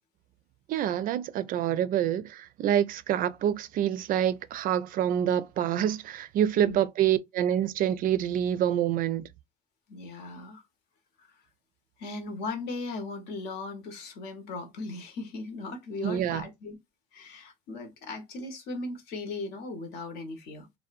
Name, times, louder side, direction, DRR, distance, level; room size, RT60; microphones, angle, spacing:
voice 1, 0.7-9.3 16.0-16.4, right 10 dB, 50° right, 0.4 m, -27 dB
voice 2, 9.9-10.6 11.2-11.3 12.0-16.8 17.1-20.7, left 3 dB, 65° left, 0.9 m, -38 dB
2.6 x 2.1 x 2.4 m
supercardioid pair, 95°, 18 cm